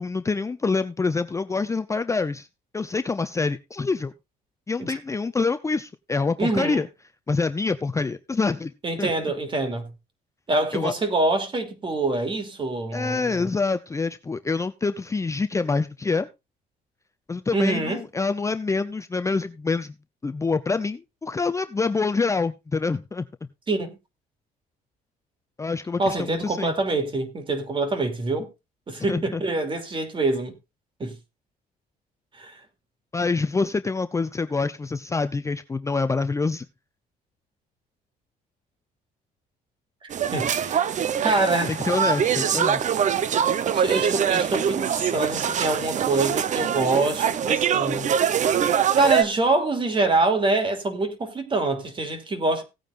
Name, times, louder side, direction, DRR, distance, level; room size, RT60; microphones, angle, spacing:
voice 1, 0.0-2.5 2.7-4.1 4.7-6.9 7.3-8.7 9.0-9.1 10.7-10.9 12.9-16.3 17.3-19.9 20.2-23.3 25.6-26.7 29.1-29.4 33.1-36.7 41.7-42.9, left 4 dB, 15° left, 0.6 m, -26 dB
voice 2, 6.4-6.8 8.8-9.9 10.5-13.5 17.5-18.0 23.7-24.0 26.0-28.5 28.9-30.5 31.0-31.2 32.4-32.6 40.3-40.8 41.2-41.8 43.7-48.1 48.9-52.6, right 2 dB, 30° right, 2.9 m, -25 dB
sound 1, 40.1-49.2, right 8 dB, 45° right, 0.8 m, -23 dB
17.5 x 9.0 x 2.6 m
cardioid pair, 110°, 17 cm